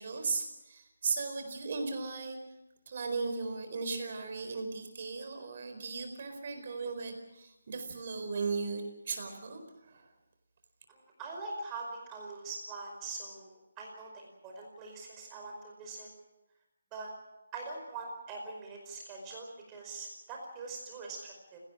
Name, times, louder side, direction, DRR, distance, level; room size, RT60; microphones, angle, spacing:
voice 1, 0.0-2.4 2.9-10.1, right 4 dB, 35° right, 6 dB, 4.5 m, -37 dB
voice 2, 10.9-16.1 16.9-17.1 17.5-21.6, right 3 dB, 15° right, 0 dB, 5.0 m, -43 dB
29.0 x 18.0 x 6.3 m, 0.92 s
hypercardioid pair, 175°, 0 cm